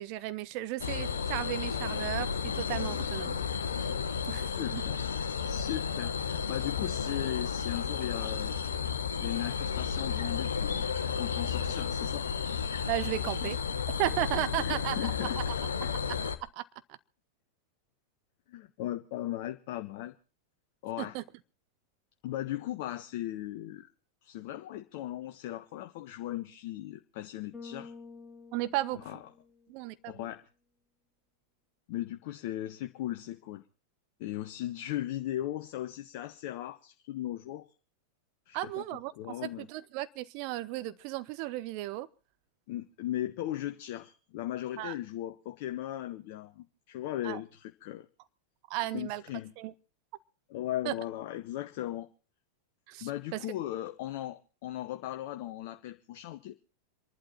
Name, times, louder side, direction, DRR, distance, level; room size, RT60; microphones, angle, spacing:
voice 1, 0.0-3.4 3.8-3.9 4.3-4.8 12.8-13.6 14.0-15.4 16.5-16.6 21.0-21.2 28.5-29.2 29.7-30.3 38.5-39.1 39.4-42.1 44.8-44.9 47.2-47.4 48.7-49.2 49.6-49.7 50.8-50.9 52.9-53.4, right 16 dB, 45° right, 1.0 m, -35 dB
sound 1, 0.8-16.4, left 6 dB, 70° left, 1.2 m, -32 dB
voice 2, 4.4-5.1 5.4-8.6 9.2-12.2 13.3-13.5 14.6-15.4 15.8-15.9 18.5-20.1 20.8-21.2 22.2-23.9 24.2-27.9 29.0-29.2 30.1-30.4 31.9-33.6 34.2-37.7 38.5-38.8 39.2-39.7 42.7-48.1 48.9-49.5 50.5-52.1 53.0-56.6, left 13 dB, 50° left, 1.0 m, -37 dB
Bass guitar, 27.5-29.9, left 5 dB, 5° left, 2.1 m, -49 dB
27.0 x 11.5 x 4.3 m
figure-of-eight pair, 90°, 0 cm